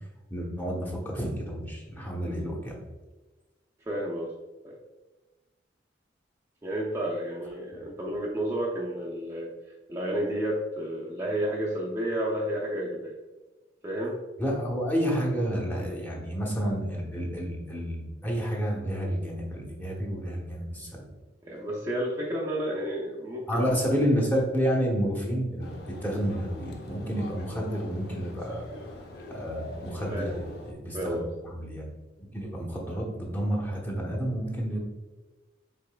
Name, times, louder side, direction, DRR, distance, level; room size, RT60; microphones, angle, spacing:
voice 1, 0.3-2.8 14.4-21.1 23.5-28.7 29.3-31.8 32.2-34.8, equal, 10° left, -3 dB, 0.9 m, -30 dB
voice 2, 3.9-4.3 4.6-4.8 6.6-9.5 9.9-13.1 13.8-14.2 21.4-23.8 30.1-30.6 30.9-31.3, right 1 dB, 15° right, -4 dB, 0.5 m, -31 dB
sound 1, 25.6-30.7, left 2 dB, 60° left, 0.7 m, -44 dB
5.3 x 4.0 x 2.2 m, 1.2 s
head